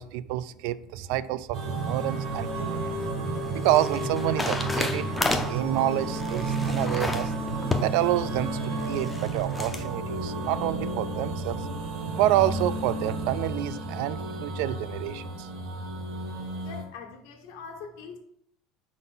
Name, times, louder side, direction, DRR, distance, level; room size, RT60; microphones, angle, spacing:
voice 1, 0.0-2.8 3.5-5.1 5.4-7.3 7.8-11.6 12.1-15.5, right 14 dB, 70° right, 16 dB, 0.3 m, -28 dB
sound 1, 1.5-16.8, right 2 dB, 50° right, 1.2 m, -32 dB
sound 2, 2.5-9.9, left 2 dB, 5° left, 0.5 m, -33 dB
voice 2, 16.5-18.2, left 5 dB, 85° left, 4 dB, 1.2 m, -42 dB
5.3 x 4.1 x 5.5 m, 0.73 s
cardioid pair, 180°, 0 cm